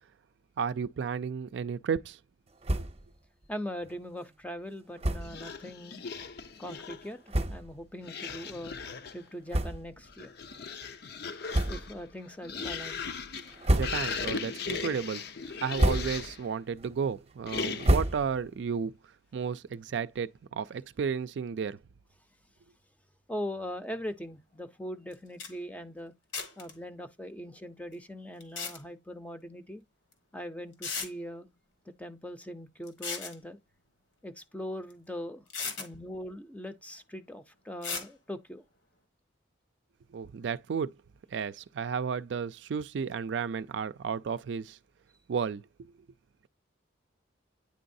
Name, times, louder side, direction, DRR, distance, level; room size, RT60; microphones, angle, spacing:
voice 1, 0.6-2.2 13.7-15.2 15.6-18.9 19.3-21.8 40.1-40.9 41.3-44.8 45.3-45.6, right 6 dB, 65° right, 0.4 m, -33 dB
sound 1, 2.6-3.1 3.4-3.5 3.8-4.0 5.0-5.4 6.1-6.3 6.9-7.0 7.3-7.8 8.4-8.5 9.5-10.1 10.5-10.6 11.5-12.1 12.5-13.0 13.4-14.3 14.7-15.1 15.5-16.4 16.7-18.6, right 1 dB, 30° right, 0.8 m, -30 dB
voice 2, 3.5-6.0 6.6-8.8 9.1-10.3 11.7-13.0 23.3-26.1 26.6-29.8 30.3-31.5 31.9-33.6 34.2-35.4 35.8-38.6, equal, 5° left, 0.5 m, -41 dB
monster sound, 5.2-7.1 8.0-9.3 10.0-16.5 17.5-18.1, left 5 dB, 55° left, 0.5 m, -38 dB
sound 2, 25.1-25.2 25.4-25.5 26.3-26.7 28.4-28.8 30.1-30.2 30.8-31.1 32.9-33.4 34.9-35.0 35.5-35.9 37.8-38.1, left 5 dB, 75° left, 1.4 m, -35 dB
9.4 x 3.8 x 2.6 m
head